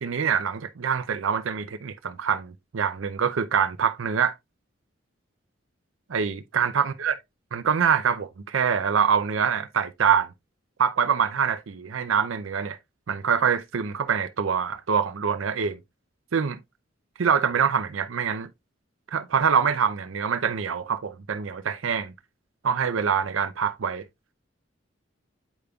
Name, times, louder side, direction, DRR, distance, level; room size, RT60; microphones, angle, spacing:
voice 1, 0.0-4.3 6.1-7.1 7.5-10.3 10.8-12.8 13.1-15.8 16.3-16.6 17.2-18.5 19.1-22.1 22.6-24.0, right 7 dB, 85° right, 0.5 m, -25 dB
8.1 x 5.1 x 2.3 m
head